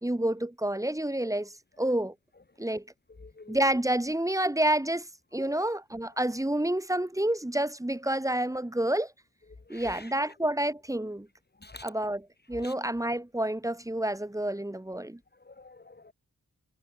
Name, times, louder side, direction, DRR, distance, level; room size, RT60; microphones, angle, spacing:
voice 1, 0.0-2.1 2.6-2.9 3.5-9.1 9.7-11.3 11.8-12.2 12.5-15.2, right 1 dB, 10° right, 1.1 m, -29 dB
voice 2, 3.2-3.6 5.4-5.6 9.7-10.1 11.6-12.1 12.5-12.7 15.4-16.1, left 2 dB, 30° left, 1.4 m, -47 dB
cardioid pair, 45°, 35 cm